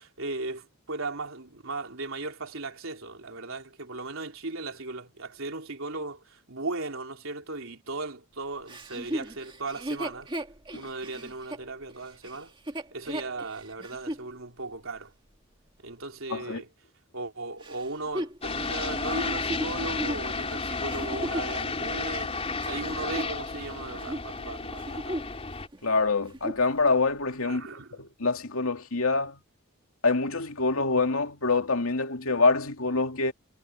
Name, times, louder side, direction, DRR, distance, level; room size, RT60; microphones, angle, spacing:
voice 1, 0.0-10.3 10.7-12.5 12.9-15.1 15.8-16.7 17.1-25.2 27.4-28.0, right 3 dB, 70° right, 3.3 m, -37 dB
Chuckle chortle, 8.7-14.3 14.8-14.9 17.6-21.6 22.2-23.7 23.9-24.3 24.7-25.4 25.7-25.8 26.2-26.7 27.3-27.4, right 1 dB, 20° right, 1.8 m, -36 dB
voice 2, 16.3-16.6 25.8-29.4 30.0-33.3, left 3 dB, 80° left, 2.5 m, -26 dB
sound 1, 18.4-25.7, left 4 dB, 30° left, 3.8 m, -32 dB
head